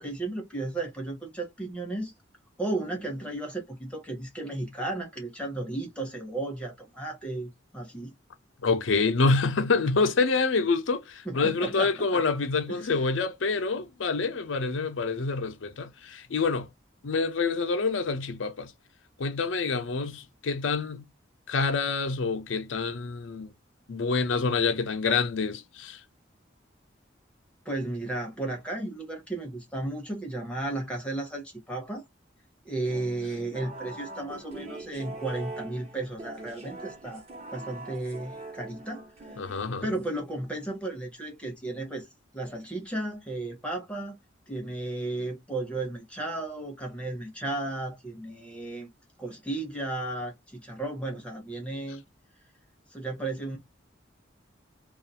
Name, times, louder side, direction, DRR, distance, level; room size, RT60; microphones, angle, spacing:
voice 1, 0.0-2.1 2.6-8.1 11.2-12.2 12.7-12.9 27.6-32.0 32.6-37.2 37.5-39.5 39.8-42.1 42.3-44.2 44.5-48.9 49.2-52.0 52.9-53.6, right 2 dB, 5° left, 0.8 m, -34 dB
voice 2, 8.6-16.7 17.0-18.7 19.2-21.1 21.5-23.5 23.9-26.0 39.4-39.9, left 4 dB, 85° left, 0.6 m, -27 dB
sound 1, 32.8-40.2, right 2 dB, 30° right, 1.0 m, -43 dB
2.4 x 2.4 x 2.7 m
head